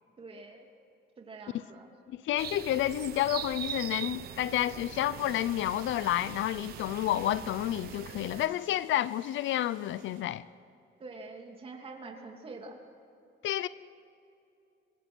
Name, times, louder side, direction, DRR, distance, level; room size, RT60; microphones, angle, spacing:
voice 1, 0.2-0.7 1.2-1.9 11.0-12.8, right 3 dB, 25° right, 2.7 m, -45 dB
voice 2, 2.1-10.4 13.4-13.7, left 13 dB, 70° left, 0.6 m, -30 dB
sound 1, 2.4-8.5, right 10 dB, 50° right, 0.8 m, -42 dB
sound 2, 5.2-10.2, right 7 dB, 70° right, 4.4 m, -55 dB
26.0 x 24.5 x 6.2 m
cardioid pair, 180°, 21 cm